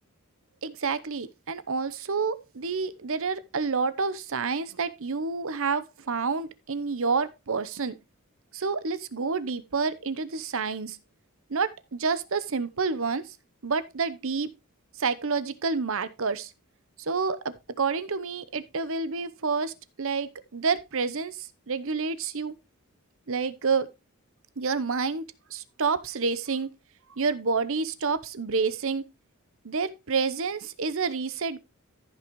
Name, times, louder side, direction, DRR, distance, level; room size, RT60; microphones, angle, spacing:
voice 1, 0.6-8.0 8.5-11.0 11.5-13.3 13.6-14.5 15.0-16.5 17.0-22.5 23.3-23.9 24.6-25.2 25.5-26.7 27.1-29.0 29.6-31.6, right 4 dB, 65° right, 0.9 m, -29 dB
14.0 x 6.0 x 3.1 m
head